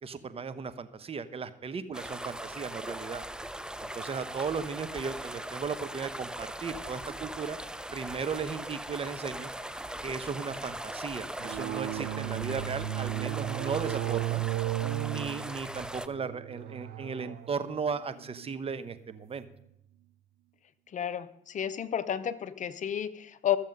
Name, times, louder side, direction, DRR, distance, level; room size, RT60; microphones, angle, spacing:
voice 1, 0.0-3.2 3.8-7.6 7.9-9.5 10.0-14.4 14.8-19.5, right 5 dB, 35° right, 13 dB, 0.9 m, -36 dB
sound 1, 1.9-16.1, right 1 dB, 5° right, 0.6 m, -40 dB
sound 2, 11.4-19.5, right 15 dB, 70° right, 0.6 m, -35 dB
voice 2, 20.9-23.6, left 10 dB, 50° left, 14 dB, 0.7 m, -31 dB
14.5 x 7.3 x 5.3 m, 0.79 s
supercardioid pair, 75°, 16 cm